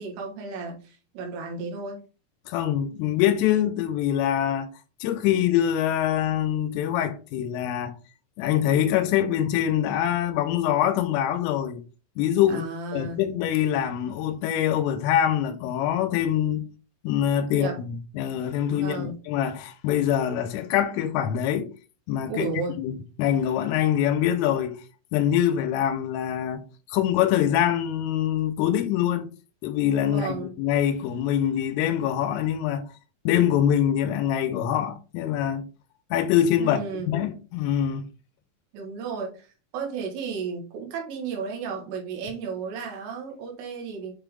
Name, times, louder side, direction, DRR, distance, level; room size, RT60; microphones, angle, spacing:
voice 1, 0.0-2.0 12.5-13.2 17.5-17.8 18.8-19.2 22.3-22.8 30.0-30.5 36.6-37.1 38.7-44.1, right 5 dB, 80° right, 4.2 m, -33 dB
voice 2, 2.5-4.7 5.0-8.0 8.4-11.8 12.2-16.7 17.0-21.7 22.1-24.8 25.1-29.3 29.6-32.9 33.3-35.7 36.1-38.1, left 10 dB, 85° left, 3.5 m, -24 dB
9.5 x 3.7 x 3.6 m
omnidirectional pair, 5.7 m